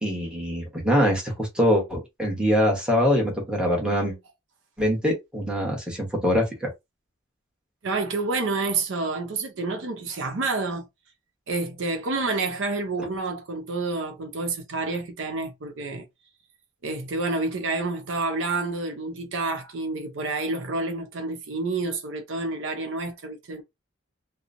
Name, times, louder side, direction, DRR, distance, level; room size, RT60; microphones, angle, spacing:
voice 1, 0.0-4.2 4.8-6.7, equal, 5° right, 1.0 m, -23 dB
voice 2, 7.8-10.8 11.5-16.1 16.8-23.6, right 3 dB, 70° right, 0.7 m, -29 dB
2.9 x 2.0 x 2.5 m
head